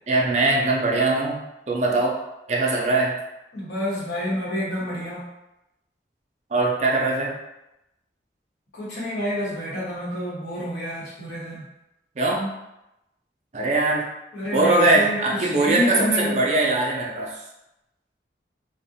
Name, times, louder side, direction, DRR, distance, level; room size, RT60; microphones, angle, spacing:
voice 1, 0.1-1.4 1.7-2.2 2.5-3.1 6.5-7.3 12.2-12.5 13.5-14.1 14.5-17.4, right 2 dB, 40° right, -2 dB, 0.4 m, -21 dB
voice 2, 3.5-5.3 8.7-11.6 14.3-16.4, left 1 dB, 90° left, -6 dB, 1.0 m, -28 dB
2.5 x 2.1 x 2.6 m, 0.92 s
head